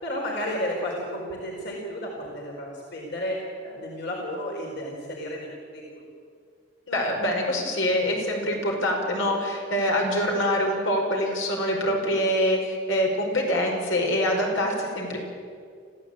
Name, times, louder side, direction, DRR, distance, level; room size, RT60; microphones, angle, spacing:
voice 1, 0.0-6.0, equal, 60° left, -1 dB, 4.4 m, -32 dB
voice 2, 6.9-15.2, equal, 75° left, 0 dB, 5.3 m, -25 dB
26.0 x 15.5 x 8.8 m, 2.2 s
head